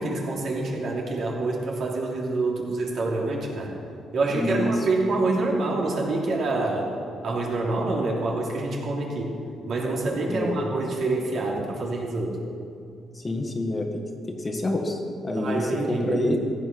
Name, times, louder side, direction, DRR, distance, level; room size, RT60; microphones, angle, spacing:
voice 1, 0.0-3.7 4.1-6.9 7.2-9.3 9.7-12.4 15.3-16.4, right 2 dB, 60° right, -2 dB, 3.2 m, -26 dB
voice 2, 4.3-4.7 10.3-10.6 13.1-13.9 14.3-16.4, left 1 dB, 25° left, 3 dB, 1.7 m, -27 dB
15.5 x 9.0 x 6.1 m, 2.5 s
cardioid pair, 90°, 0 cm